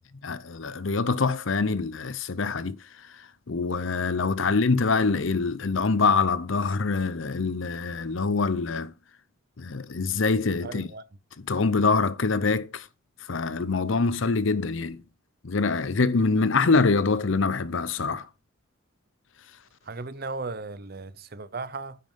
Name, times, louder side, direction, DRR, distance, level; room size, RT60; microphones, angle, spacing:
voice 1, 0.2-2.8 3.1-8.9 9.6-10.9 11.4-12.9 13.3-15.0 15.4-18.3, left 4 dB, 70° left, 0.7 m, -25 dB
voice 2, 10.6-11.0 19.9-22.0, right 3 dB, 45° right, 0.7 m, -36 dB
9.5 x 5.5 x 5.4 m
head